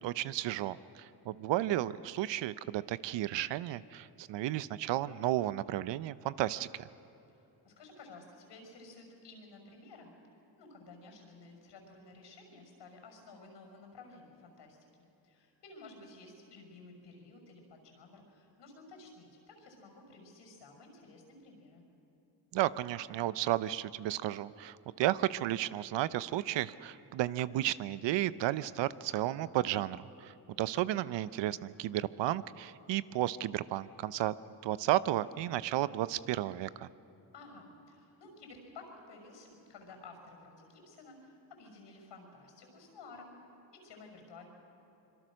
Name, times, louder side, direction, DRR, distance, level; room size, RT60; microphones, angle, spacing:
voice 1, 0.0-6.9 22.5-34.3 34.6-36.9, right 14 dB, 80° right, 16 dB, 0.7 m, -33 dB
voice 2, 7.3-10.1 10.6-14.9 15.2-21.8 37.3-43.4 43.7-44.5, left 3 dB, 75° left, 3 dB, 6.0 m, -53 dB
25.0 x 23.0 x 6.4 m, 3.0 s
cardioid pair, 80°, 43 cm